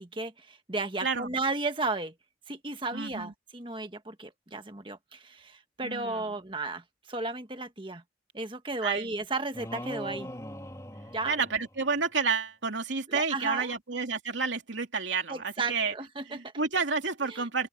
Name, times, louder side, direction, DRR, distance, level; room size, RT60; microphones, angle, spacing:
voice 1, 0.0-2.1 2.5-8.0 8.3-10.3 11.1-11.4 13.1-13.7 15.3-16.5 17.3-17.5, right 3 dB, 25° right, 1.5 m, -34 dB
voice 2, 1.0-1.3 2.9-3.3 5.8-6.4 8.8-9.1 11.2-15.9 16.3-17.7, right 4 dB, 85° right, 2.9 m, -30 dB
sound 1, 9.5-12.1, equal, 15° left, 2.6 m, -41 dB
open air
head